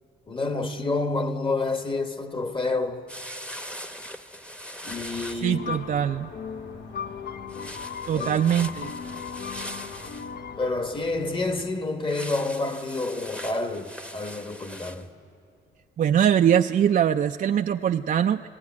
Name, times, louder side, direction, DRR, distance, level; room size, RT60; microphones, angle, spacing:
voice 1, 0.3-3.1 4.8-5.6 8.1-8.3 10.6-15.1, left 3 dB, 25° left, 1.1 m, -28 dB
sound 1, 3.1-5.5 7.5-10.3 12.1-15.0, equal, 5° left, 0.9 m, -40 dB
sound 2, 4.9-11.6, left 1 dB, 85° left, 6.7 m, -47 dB
voice 2, 5.4-6.3 8.1-8.9 16.0-18.4, right 9 dB, 45° right, 0.4 m, -22 dB
sound 3, 5.5-10.7, left 7 dB, 55° left, 0.6 m, -37 dB
18.0 x 16.0 x 9.5 m
cardioid pair, 90°, 20 cm